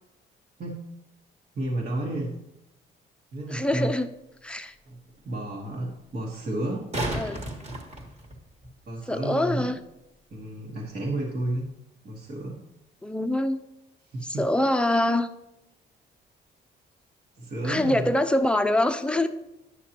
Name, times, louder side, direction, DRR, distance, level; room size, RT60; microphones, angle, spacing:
voice 1, 1.5-2.4 3.3-3.9 4.9-5.0 5.2-6.9 8.9-9.7 10.3-11.7 12.0-12.6 14.1-14.4 17.4-18.1, right 1 dB, 50° right, -4 dB, 1.4 m, -31 dB
voice 2, 3.5-4.1 4.4-4.7 7.1-7.4 9.1-9.8 13.0-13.6 14.2-15.3 17.6-19.3, left 1 dB, 5° left, 8 dB, 0.6 m, -24 dB
sound 1, 6.6-8.7 11.6-11.7, right 1 dB, 35° right, 1.5 m, -33 dB
10.0 x 6.4 x 2.9 m, 0.90 s
cardioid pair, 90°, 20 cm